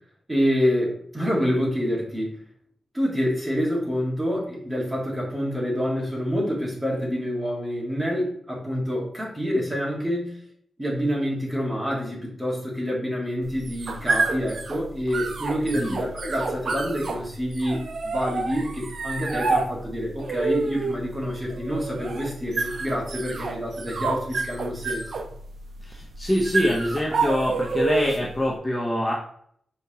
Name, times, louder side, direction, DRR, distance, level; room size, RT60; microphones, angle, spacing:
voice 1, 0.3-2.4 2.9-10.4 10.8-25.3, equal, 15° right, -4 dB, 1.5 m, -27 dB
sound 1, 13.4-28.4, right 3 dB, 55° right, 0.5 m, -29 dB
voice 2, 25.8-29.1, left 1 dB, 15° left, -4 dB, 0.7 m, -25 dB
5.4 x 3.5 x 2.8 m, 0.65 s
wide cardioid pair, 155°, 0 cm